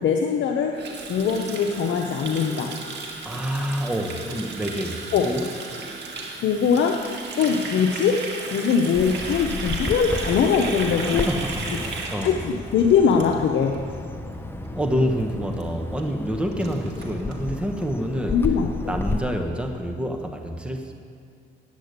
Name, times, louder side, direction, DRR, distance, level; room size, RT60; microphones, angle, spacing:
voice 1, 0.0-2.8 5.1-5.3 6.4-11.3 12.2-13.8 18.3-19.0, left 6 dB, 70° left, 3 dB, 0.9 m, -22 dB
Water tap faucet, 0.7-13.7 14.0-14.3 14.6-14.9 15.2-15.3 15.5-15.6 16.0-16.1 16.3-17.3, right 3 dB, 60° right, 2.1 m, -35 dB
voice 2, 3.2-5.5 10.9-12.4 14.7-18.4 18.9-20.9, equal, 5° right, 4 dB, 1.2 m, -28 dB
Bird vocalization bird call bird song, 8.9-19.2, left 2 dB, 10° left, 0.8 m, -33 dB
10.5 x 8.4 x 8.2 m, 2.3 s
cardioid pair, 90°, 20 cm